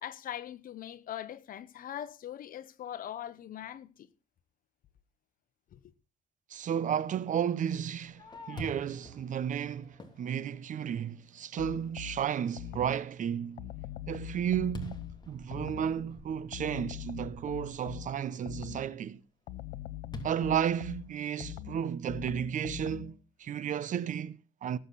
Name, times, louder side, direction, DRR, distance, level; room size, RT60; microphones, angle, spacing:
voice 1, 0.0-4.1 5.7-5.9, left 11 dB, 55° left, 1.2 m, -41 dB
voice 2, 6.5-13.7 14.1-19.2 20.2-24.8, right 9 dB, 50° right, 0.9 m, -33 dB
Fireworks, 7.7-11.2 11.8-11.9 12.4-12.8 13.2-18.0 20.1-21.5, left 1 dB, 25° left, 2.9 m, -48 dB
sound 1, 11.6-13.1 13.6-16.1 16.5-19.0 19.5-23.2, left 15 dB, 80° left, 0.8 m, -43 dB
19.0 x 8.0 x 4.2 m
cardioid pair, 110°, 17 cm